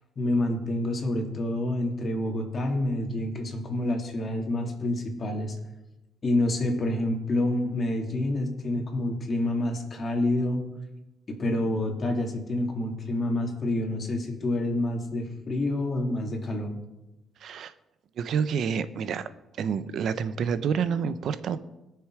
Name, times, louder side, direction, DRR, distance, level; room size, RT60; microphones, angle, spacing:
voice 1, 0.2-5.5 6.2-10.6 11.3-16.8, left 1 dB, 40° left, 2 dB, 2.9 m, -28 dB
voice 2, 17.4-17.7 18.2-19.3 19.6-21.6, right 7 dB, 70° right, 13 dB, 0.8 m, -28 dB
20.5 x 7.0 x 4.9 m, 0.96 s
cardioid pair, 90°, 0 cm